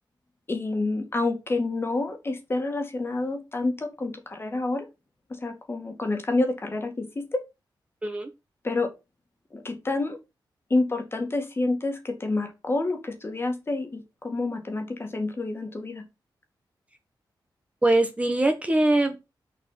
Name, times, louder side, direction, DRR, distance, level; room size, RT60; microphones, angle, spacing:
voice 1, 0.5-4.9 5.3-7.4 8.6-8.9 9.5-10.2 10.7-16.1, left 2 dB, 30° left, 6 dB, 2.1 m, -28 dB
voice 2, 17.8-19.2, right 2 dB, 15° right, 6 dB, 1.3 m, -22 dB
6.8 x 5.5 x 5.7 m, 0.24 s
wide cardioid pair, 120°, 8 cm